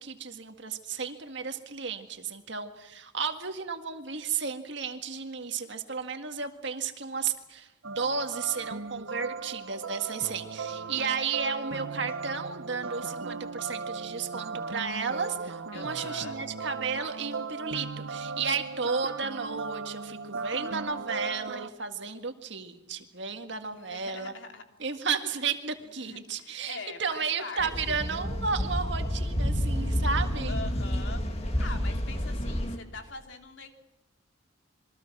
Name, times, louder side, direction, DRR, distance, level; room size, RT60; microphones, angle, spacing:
voice 1, 0.0-24.3 24.8-30.6, right 5 dB, 60° right, 6 dB, 1.9 m, -33 dB
sound 1, 7.8-21.7, right 4 dB, 80° right, 1.0 m, -37 dB
voice 2, 10.7-11.2 15.7-16.4 23.7-24.6 26.0-28.0 30.5-33.7, left 3 dB, 65° left, 4 dB, 3.0 m, -43 dB
sound 2, 27.6-32.8, equal, 30° left, 2.3 m, -29 dB
27.5 x 23.0 x 6.2 m, 0.98 s
head